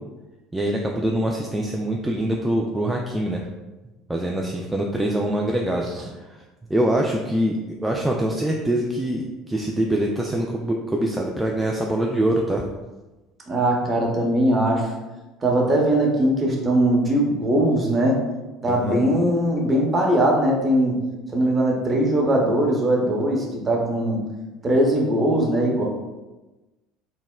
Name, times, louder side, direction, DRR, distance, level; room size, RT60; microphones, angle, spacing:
voice 1, 0.5-3.5 4.1-6.4 6.7-12.7 18.7-19.0, right 1 dB, 10° right, -1 dB, 0.3 m, -24 dB
voice 2, 13.5-14.9 15.4-18.2 18.6-21.0 21.3-24.2 24.6-25.8, right 1 dB, 25° right, -1 dB, 0.8 m, -20 dB
4.0 x 2.1 x 2.2 m, 1.1 s
hypercardioid pair, 70°, 0 cm